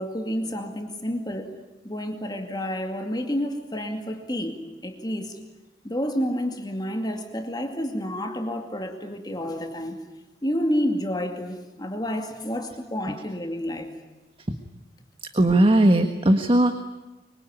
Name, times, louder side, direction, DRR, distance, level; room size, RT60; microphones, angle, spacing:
voice 1, 0.0-1.5 1.8-5.4 5.8-10.0 10.4-13.9, equal, 20° left, 5 dB, 2.3 m, -29 dB
voice 2, 15.3-16.7, right 1 dB, 30° right, 7 dB, 1.4 m, -18 dB
25.0 x 23.5 x 9.7 m, 1.1 s
head